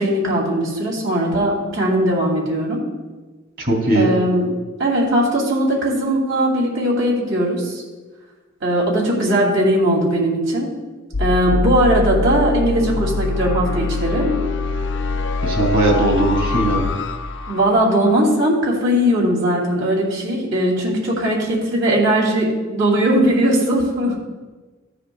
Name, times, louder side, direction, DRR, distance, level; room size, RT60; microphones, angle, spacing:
voice 1, 0.0-2.8 3.9-4.5 4.8-7.8 8.6-10.7 11.2-14.3 17.5-24.2, right 1 dB, 65° right, -3 dB, 2.7 m, -19 dB
voice 2, 3.6-4.1 15.4-16.8, right 2 dB, 50° right, -1 dB, 2.7 m, -18 dB
sound 1, 11.1-18.1, left 3 dB, 60° left, 0.6 m, -23 dB
14.5 x 9.9 x 2.3 m, 1.3 s
head